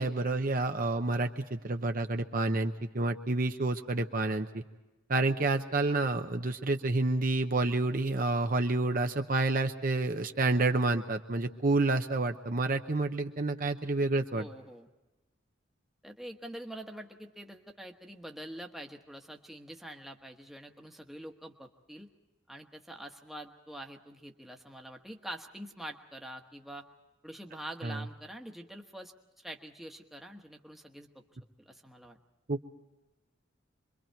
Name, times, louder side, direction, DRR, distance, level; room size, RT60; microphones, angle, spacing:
voice 1, 0.0-4.6 5.1-14.5 27.8-28.0 32.5-32.6, right 2 dB, 45° right, 6 dB, 0.8 m, -29 dB
voice 2, 14.3-14.9 16.0-22.1 22.5-26.9 27.2-31.2 31.6-32.2, right 1 dB, ahead, 2 dB, 1.2 m, -45 dB
26.5 x 23.0 x 4.6 m, 1.1 s
head